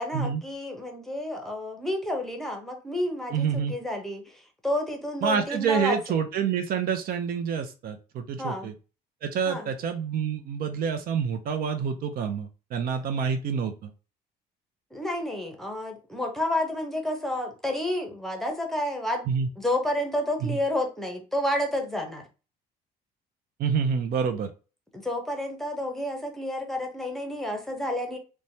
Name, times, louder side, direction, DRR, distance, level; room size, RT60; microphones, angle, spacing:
voice 1, 0.0-6.2 8.4-8.7 9.5-9.7 14.9-19.2 19.6-22.2 24.9-28.2, left 1 dB, ahead, 2 dB, 0.7 m, -30 dB
voice 2, 3.3-3.8 5.2-8.7 9.2-13.9 19.3-19.5 20.4-20.6 23.6-24.5, right 7 dB, 60° right, 7 dB, 0.5 m, -27 dB
3.1 x 2.2 x 2.7 m, 0.33 s
cardioid pair, 110°, 17 cm